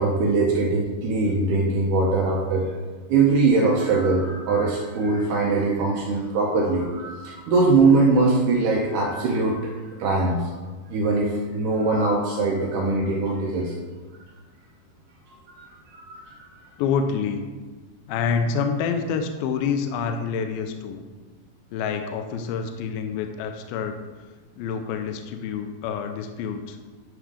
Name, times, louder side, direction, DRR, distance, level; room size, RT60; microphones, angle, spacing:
voice 1, 0.0-2.7 3.1-9.7 10.0-10.5 10.9-13.7 15.5-15.7 16.0-16.5, right 3 dB, 80° right, -1 dB, 1.9 m, -22 dB
voice 2, 16.8-17.5 18.1-21.0 21.7-24.0 24.6-26.8, left 6 dB, 80° left, 5 dB, 2.2 m, -27 dB
9.3 x 3.5 x 4.9 m, 1.3 s
omnidirectional pair, 4.5 m